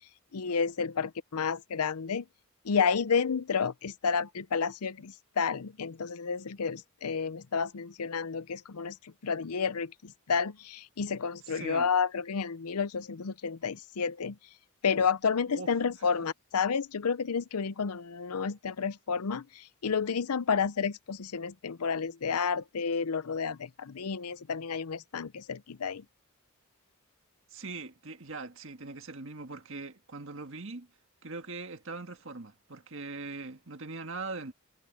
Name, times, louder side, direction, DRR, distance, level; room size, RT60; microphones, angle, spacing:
voice 1, 0.3-2.3 2.6-14.4 14.8-26.0, left 6 dB, 85° left, 0.6 m, -31 dB
voice 2, 11.5-11.9 15.5-15.7 16.0-16.1 27.5-30.9 31.2-34.5, right 3 dB, 60° right, 1.8 m, -41 dB
head